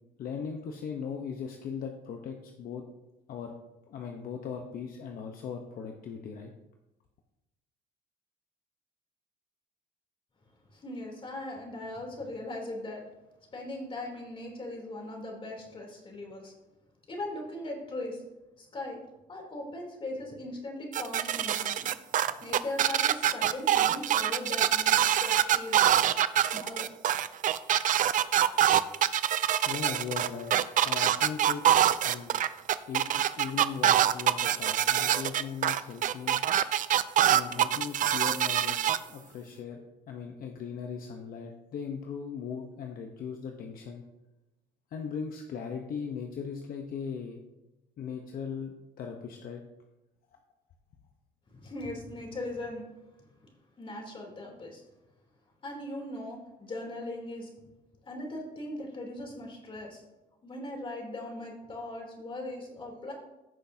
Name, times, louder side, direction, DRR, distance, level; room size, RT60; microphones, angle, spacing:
voice 1, 0.2-2.8 3.3-3.5 3.9-6.5 29.7-31.6 32.0-32.3 32.9-36.4 37.3-44.0 44.9-47.4 48.0-49.6, left 6 dB, 60° left, 3 dB, 0.9 m, -38 dB
voice 2, 10.7-13.1 13.5-16.5 17.1-18.2 18.6-19.0 19.3-21.9 22.2-25.8 26.5-26.9 51.5-52.9 53.8-54.8 55.6-57.5 58.0-60.0 60.4-63.1, left 1 dB, 30° left, 0 dB, 3.3 m, -39 dB
sound 1, 20.9-39.0, right 11 dB, 50° right, 0.5 m, -25 dB
15.5 x 6.4 x 2.8 m, 0.98 s
cardioid pair, 110°, 17 cm